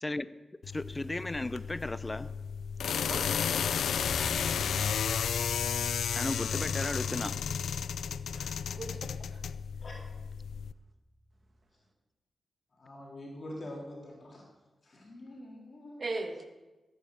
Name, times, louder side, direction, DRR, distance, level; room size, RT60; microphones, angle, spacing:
sound 1, 0.6-10.7, left 7 dB, 90° left, 0.4 m, -33 dB
voice 1, 0.6-2.3 6.1-7.3, left 2 dB, 25° left, 0.6 m, -35 dB
voice 2, 3.0-3.3 8.3-9.4 16.0-16.4, right 3 dB, 50° right, 2.0 m, -39 dB
sound 2, 3.9-11.6, right 1 dB, 5° left, 5.9 m, -47 dB
voice 3, 12.7-14.4 14.8-16.0, left 1 dB, 55° left, 3.7 m, -45 dB
15.0 x 8.8 x 6.5 m
cardioid pair, 65°, 0 cm